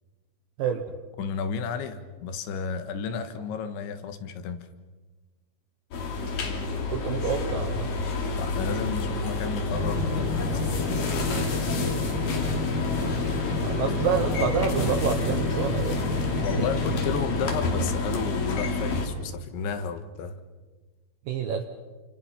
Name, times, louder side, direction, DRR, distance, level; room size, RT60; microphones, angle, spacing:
voice 1, 1.2-4.7 8.4-11.1 16.4-20.4, left 6 dB, 80° left, 8 dB, 3.7 m, -32 dB
sound 1, 5.9-19.1, left 3 dB, 50° left, 4.1 m, -29 dB
voice 2, 6.9-7.9 13.6-16.0 21.3-21.6, right 7 dB, 70° right, 6 dB, 2.2 m, -28 dB
sound 2, 9.7-17.3, left 3 dB, 15° right, 6.5 m, -31 dB
28.0 x 26.5 x 5.8 m, 1.3 s
omnidirectional pair, 5.4 m